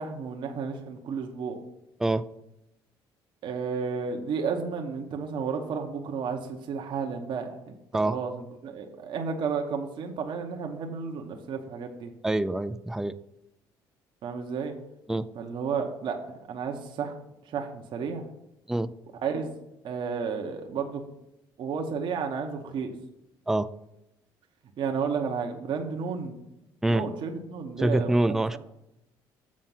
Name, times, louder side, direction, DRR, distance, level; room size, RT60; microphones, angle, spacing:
voice 1, 0.0-1.6 3.4-7.7 8.0-12.1 14.2-14.7 15.3-16.2 16.5-17.1 17.5-18.2 19.2-19.5 19.8-21.0 21.6-22.9 24.8-26.3 26.9-28.6, right 5 dB, 60° right, 3 dB, 1.0 m, -32 dB
voice 2, 12.2-13.1 15.1-15.3 18.7-18.9 23.5-23.7 26.8-27.0 27.8-28.6, right 1 dB, 5° right, 12 dB, 0.4 m, -25 dB
7.5 x 4.4 x 5.7 m, 0.85 s
cardioid pair, 90°, 9 cm